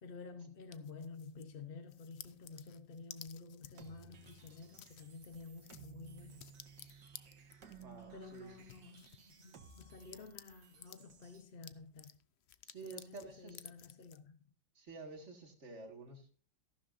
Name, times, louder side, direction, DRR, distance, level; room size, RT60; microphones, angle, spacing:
voice 1, 0.0-6.4 8.1-12.2 12.8-14.4, left 4 dB, 40° left, 0.8 m, -51 dB
sound 1, 0.7-1.5 1.9-11.0 11.4-14.2, left 10 dB, 75° left, 0.6 m, -56 dB
sound 2, 3.7-11.4, right 6 dB, 75° right, 2.1 m, -58 dB
voice 2, 7.7-8.6 12.7-13.7 14.8-16.3, right 3 dB, 40° right, 2.1 m, -50 dB
14.0 x 12.5 x 2.6 m
omnidirectional pair, 1.9 m